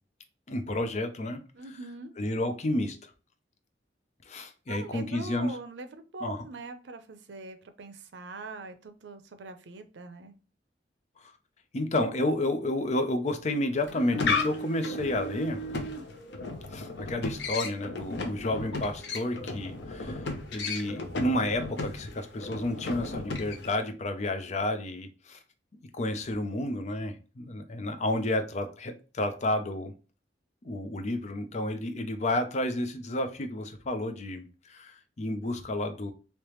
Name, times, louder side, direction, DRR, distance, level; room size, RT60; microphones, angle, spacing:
voice 1, 0.5-1.4 2.2-3.1 4.3-5.6 6.2-6.4 11.7-15.6 16.7-20.2 20.5-25.4 26.0-29.9 30.6-36.1, left 1 dB, 40° left, 8 dB, 0.5 m, -31 dB
voice 2, 1.5-2.1 4.7-10.3, right 3 dB, 90° right, 9 dB, 0.5 m, -42 dB
sound 1, 13.8-23.8, left 3 dB, 90° left, 0.7 m, -34 dB
3.3 x 2.9 x 3.1 m, 0.34 s
head